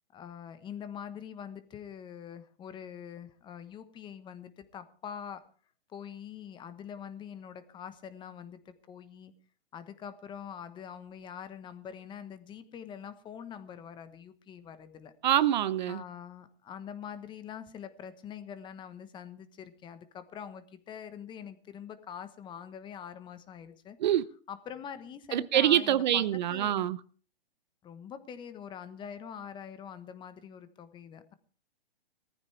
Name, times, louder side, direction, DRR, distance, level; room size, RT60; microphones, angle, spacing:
voice 1, 0.1-5.4 5.9-9.3 9.7-15.1 15.9-24.0 24.5-26.2 26.5-26.9 27.8-31.3, left 8 dB, 15° left, 1.2 m, -44 dB
voice 2, 15.2-16.0 24.0-24.3 25.3-27.0, right 11 dB, 45° right, 0.8 m, -25 dB
19.0 x 14.5 x 3.4 m
hypercardioid pair, 135°, 30 cm